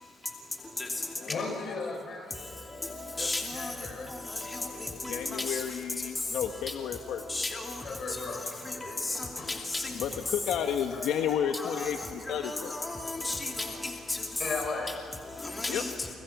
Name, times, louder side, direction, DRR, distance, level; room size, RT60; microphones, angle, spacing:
voice 1, 1.3-2.5 3.1-4.2 7.8-9.5 10.9-11.3 11.6-12.3 12.7-12.8 14.4-14.9, left 3 dB, 50° left, 3 dB, 6.9 m, -37 dB
voice 2, 3.2-3.7 7.3-7.6 9.5-9.8 11.5-11.6 12.4-12.9 13.2-13.7 14.1-14.2 15.6-15.9, left 2 dB, 20° left, 1 dB, 2.9 m, -32 dB
voice 3, 5.0-7.2 9.9-12.8 15.7-15.8, left 8 dB, 85° left, 5 dB, 1.2 m, -32 dB
29.5 x 26.0 x 6.0 m, 2.6 s
cardioid pair, 90°, 0 cm